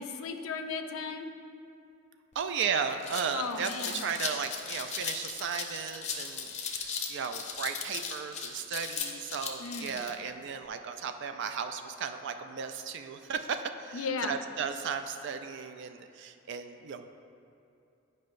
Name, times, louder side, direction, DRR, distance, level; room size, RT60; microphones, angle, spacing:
voice 1, 0.0-1.3 3.3-4.0 9.6-10.1 13.9-14.3, left 5 dB, 85° left, 6 dB, 0.4 m, -36 dB
sound 1, 2.3-2.4 2.7-10.1, left 6 dB, 35° left, 0.6 m, -37 dB
voice 2, 2.4-17.1, right 6 dB, 60° right, 8 dB, 0.3 m, -35 dB
9.4 x 5.3 x 2.5 m, 2.8 s
head